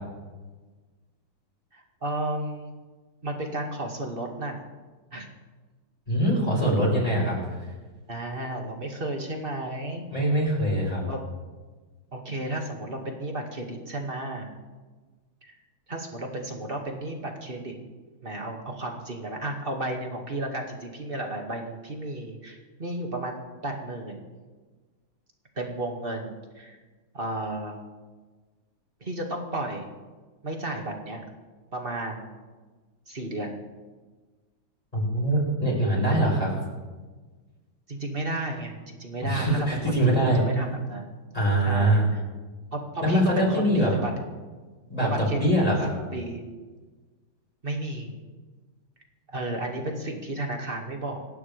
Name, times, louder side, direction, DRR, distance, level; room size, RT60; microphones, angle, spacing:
voice 1, 1.7-2.7 3.2-4.6 5.1-5.3 8.1-10.0 11.1-11.2 12.1-14.5 15.4-15.5 15.9-17.8 18.2-24.2 25.6-26.8 27.1-27.8 29.0-29.9 30.4-31.2 31.7-32.4 33.1-33.6 37.9-41.1 41.6-42.2 42.7-44.1 45.0-45.8 46.1-46.4 47.6-48.1 49.3-51.3, right 1 dB, 25° right, 1 dB, 2.2 m, -33 dB
voice 2, 6.1-7.4 10.1-11.0 34.9-36.5 39.2-40.4 41.3-42.1 43.0-43.9 44.9-45.1 45.3-45.9, right 1 dB, 15° left, -5 dB, 6.8 m, -23 dB
27.5 x 12.0 x 3.5 m, 1.3 s
omnidirectional pair, 2.3 m